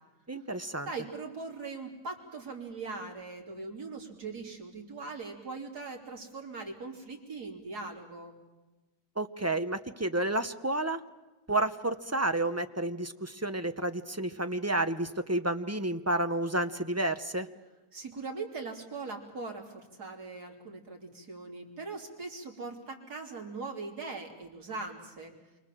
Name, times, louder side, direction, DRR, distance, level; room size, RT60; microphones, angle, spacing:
voice 1, 0.3-0.9 9.2-11.0 11.5-17.5, right 1 dB, 20° right, 8 dB, 0.4 m, -30 dB
voice 2, 0.9-8.4 17.9-25.3, right 3 dB, 65° right, 1 dB, 3.9 m, -40 dB
28.5 x 24.0 x 7.6 m, 1.2 s
omnidirectional pair, 1.8 m